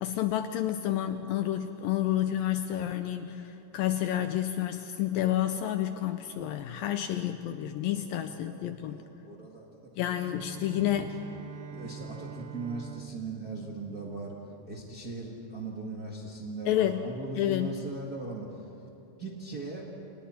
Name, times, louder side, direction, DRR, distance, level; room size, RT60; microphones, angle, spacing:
voice 1, 0.0-9.0 10.0-11.2 16.7-17.1 17.4-17.8, left 12 dB, 85° left, 8 dB, 2.1 m, -30 dB
voice 2, 7.8-9.7 10.5-11.0 11.7-14.4 14.6-18.6 19.2-19.9, right 3 dB, 50° right, -2 dB, 1.1 m, -39 dB
Bowed string instrument, 10.0-14.9, right 6 dB, 80° right, 3.2 m, -46 dB
29.5 x 28.0 x 4.3 m, 2.9 s
omnidirectional pair, 4.7 m